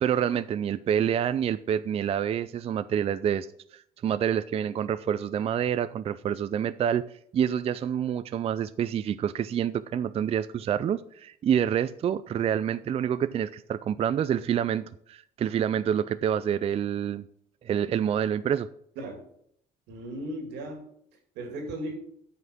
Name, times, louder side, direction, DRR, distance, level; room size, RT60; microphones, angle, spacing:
voice 1, 0.0-3.5 3.7-7.0 7.3-17.3 17.6-18.7, right 9 dB, 35° right, 14 dB, 0.4 m, -27 dB
voice 2, 19.9-20.9 21.4-21.9, right 1 dB, 90° right, 4 dB, 2.4 m, -36 dB
9.3 x 5.7 x 6.1 m, 0.68 s
cardioid pair, 110°, 17 cm